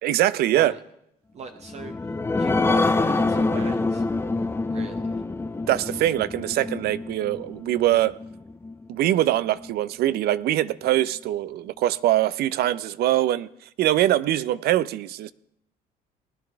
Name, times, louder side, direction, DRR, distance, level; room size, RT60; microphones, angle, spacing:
voice 1, 0.0-0.7 5.7-8.1 8.9-13.5 13.8-15.3, right 13 dB, 70° right, 0.5 m, -23 dB
voice 2, 1.3-1.9 2.3-4.0 4.7-5.2, right 5 dB, 40° right, 0.8 m, -39 dB
sound 1, 1.6-8.7 9.2-9.3 9.6-9.7, left 3 dB, 15° left, 0.6 m, -26 dB
19.0 x 10.5 x 3.4 m
cardioid pair, 110°, 17 cm